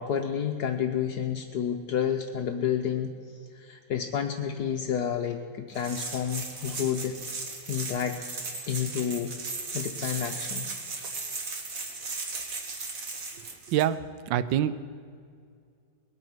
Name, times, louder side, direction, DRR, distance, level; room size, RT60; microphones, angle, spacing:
voice 1, 0.0-3.1 3.5-7.1 7.7-8.2 8.7-9.3 9.7-10.7, left 8 dB, 65° left, 4 dB, 1.2 m, -30 dB
sound 1, 5.7-13.8, right 3 dB, 50° right, 1.9 m, -36 dB
voice 2, 14.3-14.8, right 11 dB, 80° right, 14 dB, 1.3 m, -25 dB
21.0 x 8.8 x 6.2 m, 2.3 s
omnidirectional pair, 2.0 m